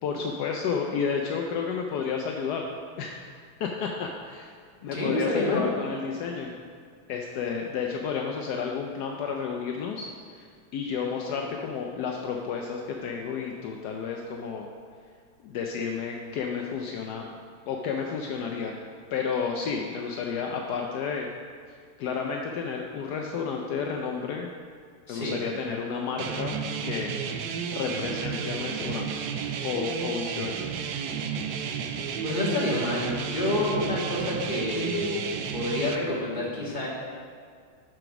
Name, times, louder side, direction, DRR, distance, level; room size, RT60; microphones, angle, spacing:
voice 1, 0.0-2.7 3.0-3.2 3.6-4.5 4.8-6.5 7.1-14.7 15.4-17.3 17.7-18.7 19.1-21.3 22.0-24.5 25.1-27.1 27.7-29.1 29.6-30.7, left 6 dB, 75° left, 1 dB, 0.9 m, -31 dB
voice 2, 4.9-5.6 25.1-25.4 32.2-35.2 35.5-36.9, left 1 dB, 25° left, -6 dB, 1.7 m, -28 dB
sound 1, 26.2-36.0, right 7 dB, 75° right, 0.9 m, -32 dB
7.8 x 5.1 x 6.0 m, 2.1 s
omnidirectional pair, 2.3 m